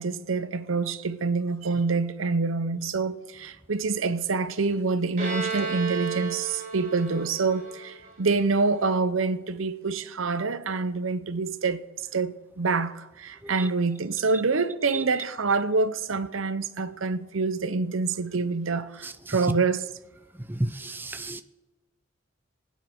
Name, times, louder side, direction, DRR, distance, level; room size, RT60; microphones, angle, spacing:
voice 1, 0.0-11.8 12.1-19.9, right 4 dB, 80° right, 0.7 m, -26 dB
Bowed string instrument, 5.2-8.7, right 5 dB, 40° right, 3.8 m, -33 dB
voice 2, 19.0-19.4 20.5-21.4, right 1 dB, 10° right, 0.4 m, -32 dB
24.0 x 9.3 x 3.7 m
head